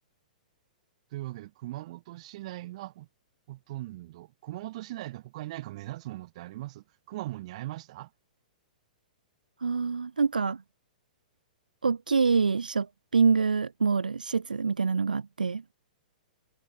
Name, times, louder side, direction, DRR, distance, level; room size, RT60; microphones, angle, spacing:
voice 1, 1.1-3.1 3.5-8.1, right 17 dB, 45° right, 7.3 m, -39 dB
voice 2, 9.6-10.6 11.8-15.6, right 5 dB, 75° right, 1.9 m, -26 dB
figure-of-eight pair, 110°, 5 cm